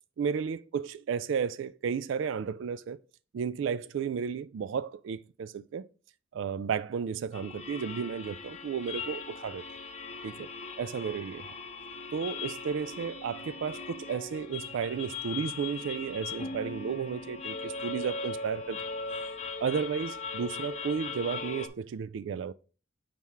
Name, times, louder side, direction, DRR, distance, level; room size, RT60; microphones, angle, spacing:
voice 1, 0.2-3.0 3.3-5.9 6.3-9.6 10.2-10.5 10.8-11.4 12.1-18.8 19.6-22.5, right 6 dB, 80° right, 0.3 m, -33 dB
sound 1, 7.3-21.7, left 4 dB, 35° left, 0.7 m, -39 dB
4.7 x 4.4 x 5.5 m
head